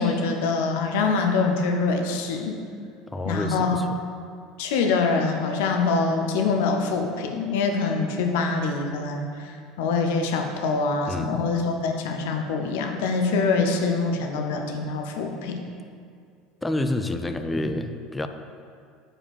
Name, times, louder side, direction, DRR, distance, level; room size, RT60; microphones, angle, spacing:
voice 1, 0.0-2.6 3.3-3.8 4.6-9.5 9.8-15.6, left 4 dB, 65° left, 3 dB, 0.6 m, -24 dB
voice 2, 3.1-4.0 11.1-11.4 16.6-18.3, left 1 dB, 10° left, 7 dB, 0.4 m, -28 dB
7.0 x 4.8 x 3.5 m, 2.3 s
figure-of-eight pair, 70°, 0 cm